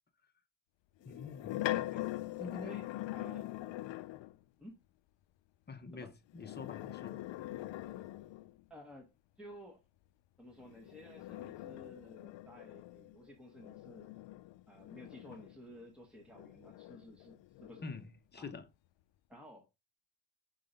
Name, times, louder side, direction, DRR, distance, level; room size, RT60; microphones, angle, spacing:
sound 1, 1.0-4.4 6.3-8.6 10.6-15.8 16.3-18.1, left 15 dB, 70° left, 0.5 m, -42 dB
voice 1, 1.0-1.7 2.4-2.8 5.7-7.2 17.8-18.7, left 4 dB, 20° left, 0.9 m, -46 dB
voice 2, 2.6-3.5 4.6-4.8 5.9-6.1 8.7-9.1 9.4-9.8 10.4-14.1 14.7-17.8 18.4-18.5 19.3-19.7, equal, ahead, 1.2 m, -54 dB
5.5 x 3.7 x 5.1 m
cardioid pair, 135°, 47 cm